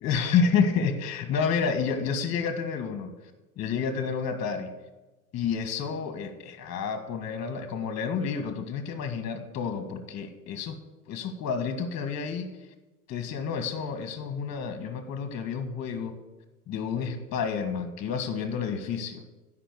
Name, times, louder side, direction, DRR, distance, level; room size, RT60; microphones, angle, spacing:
voice 1, 0.0-3.1 3.6-4.7 5.3-10.8 11.1-12.5 13.1-16.2 16.7-19.2, left 6 dB, 35° left, 7 dB, 1.8 m, -29 dB
16.0 x 5.8 x 8.4 m, 1.1 s
hypercardioid pair, 95°, 44 cm